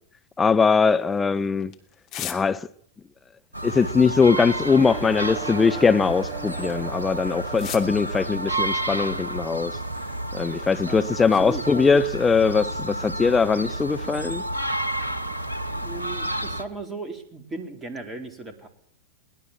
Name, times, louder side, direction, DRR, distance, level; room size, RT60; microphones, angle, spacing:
voice 1, 0.4-1.7 2.2-2.7 3.6-9.7 10.3-14.4, left 5 dB, 15° left, 0.8 m, -21 dB
sound 1, 0.8-2.9 3.8-7.0 7.4-8.0 8.8-10.0 10.2-12.4, left 11 dB, 40° left, 2.9 m, -44 dB
sound 2, 3.5-16.6, right 1 dB, 80° right, 1.5 m, -31 dB
sound 3, 4.6-10.5, right 6 dB, 30° right, 1.4 m, -39 dB
voice 2, 11.3-12.0 15.8-18.7, right 2 dB, 15° right, 4.1 m, -36 dB
22.0 x 19.0 x 7.5 m
figure-of-eight pair, 90°, 0 cm